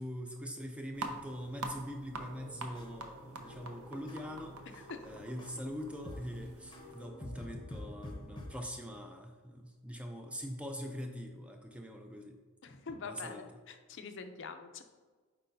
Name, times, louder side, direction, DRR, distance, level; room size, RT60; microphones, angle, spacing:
voice 1, 0.0-4.6 5.0-12.4 13.0-13.5, equal, 5° right, 4 dB, 0.3 m, -43 dB
sound 1, 0.9-7.1, right 2 dB, 75° right, 0.7 m, -46 dB
sound 2, 2.1-8.5, left 1 dB, 20° left, 0.7 m, -48 dB
voice 2, 4.7-5.2 12.6-14.8, left 4 dB, 55° left, 6 dB, 0.5 m, -45 dB
8.3 x 4.6 x 2.6 m, 1.4 s
head